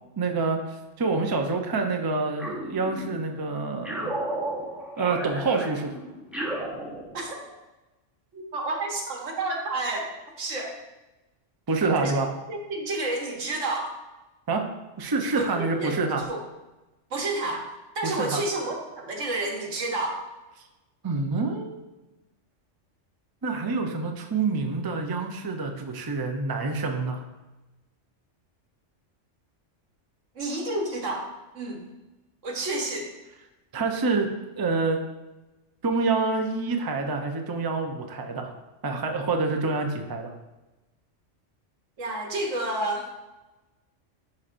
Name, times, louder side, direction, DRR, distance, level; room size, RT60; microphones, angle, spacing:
voice 1, 0.2-4.1 5.0-5.9 11.7-12.3 14.5-14.7 15.0-16.3 18.0-18.4 21.0-21.7 23.4-27.2 33.7-34.3 34.6-35.0 35.8-38.5 38.8-40.3, right 3 dB, 25° right, 3 dB, 0.5 m, -27 dB
sound 1, 2.4-3.4 3.8-7.5, right 1 dB, ahead, 1.0 m, -34 dB
voice 2, 8.3-10.1 10.4-10.7 12.0-12.1 12.5-13.9 15.3-16.0 16.3-16.4 17.1-17.7 17.9-20.2 30.3-31.3 31.5-31.8 32.4-33.1 42.0-43.1, right 2 dB, 80° right, 0 dB, 1.6 m, -30 dB
11.0 x 4.3 x 2.5 m, 1.1 s
omnidirectional pair, 1.3 m